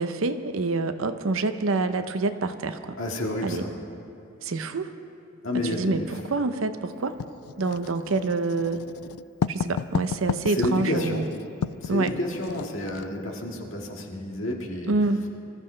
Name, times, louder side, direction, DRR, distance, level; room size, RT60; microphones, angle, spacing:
voice 1, 0.0-3.0 3.4-3.6 4.4-4.9 5.7-7.1 7.6-8.8 9.5-11.3 11.9-12.1 14.9-15.3, right 3 dB, 65° right, 9 dB, 0.7 m, -26 dB
voice 2, 3.0-3.7 5.4-6.1 10.5-11.2 11.8-14.9, left 1 dB, 60° left, 0 dB, 1.9 m, -30 dB
Writing, 7.2-13.1, left 6 dB, 80° left, 0.4 m, -32 dB
25.5 x 14.5 x 3.3 m, 2.8 s
head